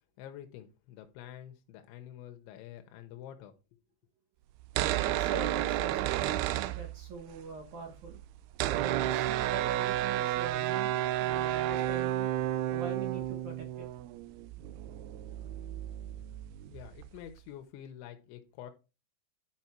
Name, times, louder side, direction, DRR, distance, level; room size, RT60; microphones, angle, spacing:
voice 1, 0.2-3.6 16.7-18.7, left 11 dB, 85° left, 3.2 m, -47 dB
sound 1, 4.6-7.4 7.6-7.7 7.9-17.3, right 13 dB, 90° right, 2.2 m, -32 dB
voice 2, 5.0-8.2 8.7-12.3 12.7-13.9, right 5 dB, 70° right, 1.8 m, -43 dB
11.0 x 5.2 x 4.4 m
omnidirectional pair, 5.3 m